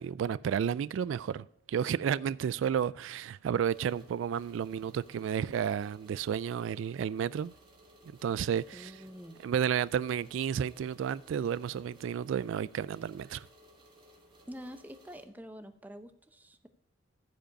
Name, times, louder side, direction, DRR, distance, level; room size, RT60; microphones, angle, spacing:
voice 1, 0.0-7.5 8.2-8.9 9.4-13.4, right 8 dB, 80° right, 0.3 m, -32 dB
sound 1, 3.7-15.2, equal, 25° right, 2.8 m, -60 dB
voice 2, 8.7-9.4 14.5-16.7, equal, 10° right, 0.7 m, -47 dB
15.0 x 5.1 x 5.2 m
head